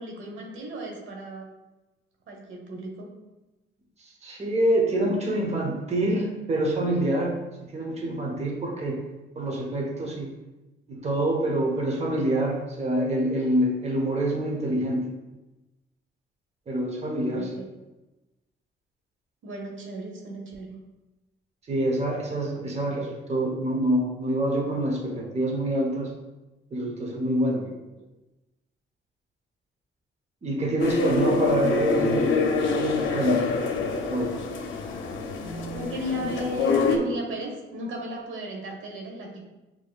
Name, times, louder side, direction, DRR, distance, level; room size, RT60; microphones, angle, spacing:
voice 1, 0.0-1.5 2.3-3.1 17.3-17.7 19.4-20.8 27.6-28.1 35.7-39.4, equal, 80° right, 0 dB, 1.0 m, -35 dB
voice 2, 4.2-7.3 7.7-9.0 9.4-10.3 10.9-15.0 16.7-17.5 21.7-26.1 26.7-27.7 30.4-32.3 32.7-33.5 34.1-34.4, right 1 dB, 35° right, 0 dB, 0.9 m, -26 dB
sound 1, 30.8-37.0, left 4 dB, 75° left, 0.6 m, -26 dB
6.1 x 3.0 x 2.3 m, 1.1 s
cardioid pair, 90°, 20 cm